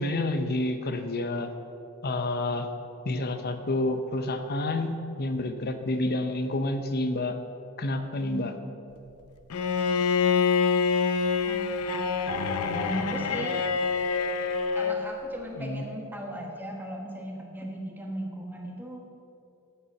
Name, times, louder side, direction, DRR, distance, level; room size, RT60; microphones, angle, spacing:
voice 1, 0.0-1.5 2.0-2.7 3.0-7.4 7.8-8.5 15.6-15.8, left 2 dB, 45° left, 8 dB, 0.7 m, -29 dB
voice 2, 8.2-8.6 11.4-11.6 12.7-13.6 14.7-19.0, right 1 dB, 10° right, 0 dB, 1.3 m, -37 dB
Bowed string instrument, 9.5-15.0, left 5 dB, 80° left, 0.7 m, -26 dB
8.7 x 8.0 x 7.0 m, 2.7 s
head